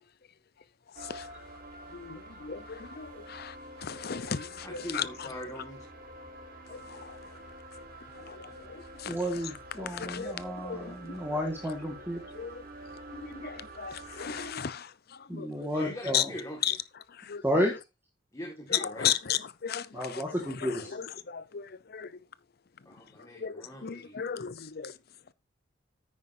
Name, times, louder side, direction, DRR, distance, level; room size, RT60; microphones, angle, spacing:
sound 1, 1.0-14.5, right 1 dB, 50° right, 2.2 m, -47 dB
voice 1, 1.9-3.5 3.8-5.1 6.7-7.0 8.3-8.4 8.7-9.2 9.8-10.9 11.3-11.4 12.3-12.6 13.2-14.9 15.3-15.5 16.1-16.2 16.6-16.7 17.3-17.4 19.0-20.3 20.6-22.1 23.4-24.9, left 8 dB, 55° left, 0.7 m, -35 dB
voice 2, 4.6-5.8 15.7-16.8 18.3-19.1 22.9-24.2, equal, 20° left, 2.0 m, -42 dB
voice 3, 9.1-12.2 15.3-16.3 17.4-17.7 19.9-20.9, equal, 10° right, 1.8 m, -32 dB
9.7 x 9.4 x 2.7 m
head